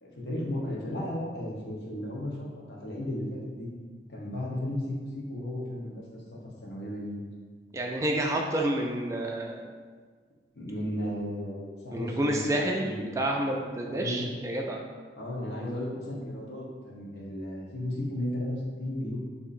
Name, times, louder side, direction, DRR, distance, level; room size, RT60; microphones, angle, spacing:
voice 1, 0.0-3.7 4.1-6.2 6.6-7.3 10.5-13.1 13.9-14.3 15.2-19.2, left 1 dB, 65° left, -3 dB, 1.0 m, -34 dB
voice 2, 7.7-9.6 11.9-14.8, right 1 dB, 15° right, 0 dB, 0.3 m, -29 dB
6.6 x 2.7 x 2.6 m, 1.6 s
head